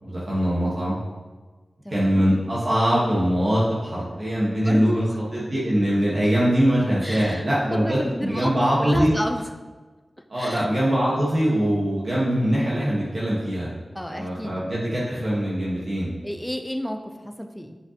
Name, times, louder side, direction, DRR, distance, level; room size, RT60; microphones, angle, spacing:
voice 1, 0.0-1.0 1.9-9.1 10.3-13.7 14.1-16.1, equal, 45° right, -7 dB, 1.4 m, -22 dB
voice 2, 1.8-2.3 4.6-5.0 7.0-7.4 7.7-8.5 8.8-9.5 10.3-10.7 13.9-14.7 16.2-17.8, equal, 5° left, 4 dB, 0.6 m, -31 dB
8.3 x 5.6 x 2.9 m, 1.3 s
wide cardioid pair, 105°, 0 cm